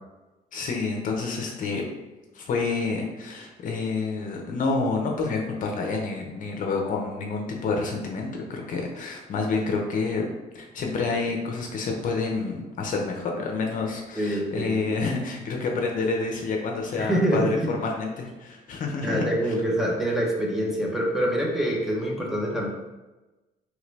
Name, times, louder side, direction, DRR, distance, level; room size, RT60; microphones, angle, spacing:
voice 1, 0.5-1.8 2.3-10.2 10.5-19.5, left 4 dB, 50° left, 1 dB, 0.7 m, -28 dB
voice 2, 14.2-14.7 17.0-17.7 19.0-22.7, right 1 dB, ahead, -4 dB, 0.8 m, -25 dB
3.7 x 3.2 x 3.2 m, 1.1 s
cardioid pair, 110°, 17 cm